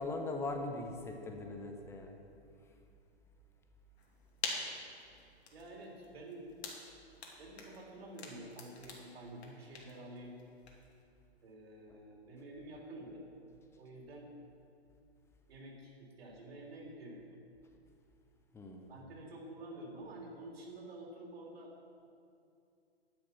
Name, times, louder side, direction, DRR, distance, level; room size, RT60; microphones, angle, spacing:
voice 1, 0.0-2.2 18.5-18.9, left 2 dB, 10° left, 4 dB, 0.7 m, -40 dB
sound 1, 4.0-11.0, left 3 dB, 75° left, 2.6 m, -47 dB
voice 2, 5.5-6.6 7.4-10.4 11.4-13.2 13.8-14.3 15.5-17.4 18.9-21.7, right 1 dB, 65° right, -1 dB, 3.4 m, -49 dB
10.5 x 10.5 x 5.6 m, 2.5 s
hypercardioid pair, 140°, 33 cm